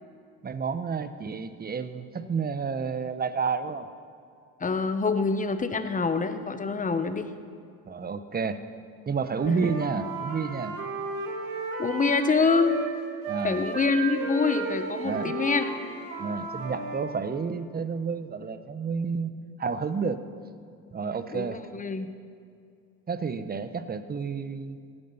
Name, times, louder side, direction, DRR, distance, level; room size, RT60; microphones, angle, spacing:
voice 1, 0.4-3.9 7.9-8.7 9.1-10.8 13.3-13.6 15.0-15.3 16.2-19.3 19.6-20.3 20.9-21.6 23.1-24.8, right 5 dB, 25° right, 11 dB, 0.9 m, -30 dB
voice 2, 4.6-7.3 9.5-9.7 11.8-12.8 13.4-15.6 21.3-22.1, left 4 dB, 20° left, 9 dB, 1.1 m, -26 dB
Wind instrument woodwind instrument, 9.3-12.9 13.2-17.1, right 3 dB, 70° right, 2.5 m, -34 dB
16.0 x 9.8 x 5.7 m, 2.4 s
supercardioid pair, 80°, 36 cm